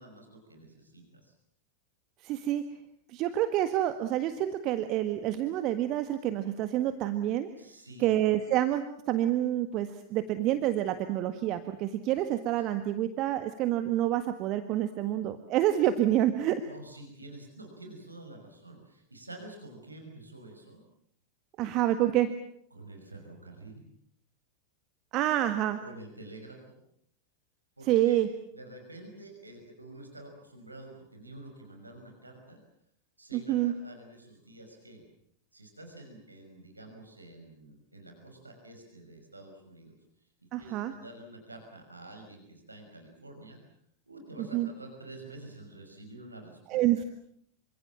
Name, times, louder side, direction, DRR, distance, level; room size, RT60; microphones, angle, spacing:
voice 1, 0.0-1.3 7.6-8.1 16.6-20.8 22.7-23.8 25.8-26.8 27.8-28.2 28.5-32.6 33.2-35.0 35.5-39.9 40.6-43.6 44.1-47.0, right 2 dB, 80° right, 3 dB, 5.8 m, -48 dB
voice 2, 2.2-2.6 3.1-7.5 8.0-16.6 21.6-22.3 25.1-25.8 27.9-28.3 33.3-33.7 40.5-40.9 44.4-44.7 46.7-47.0, right 13 dB, 40° right, 9 dB, 1.7 m, -28 dB
27.5 x 25.0 x 7.4 m, 0.68 s
figure-of-eight pair, 90°, 0 cm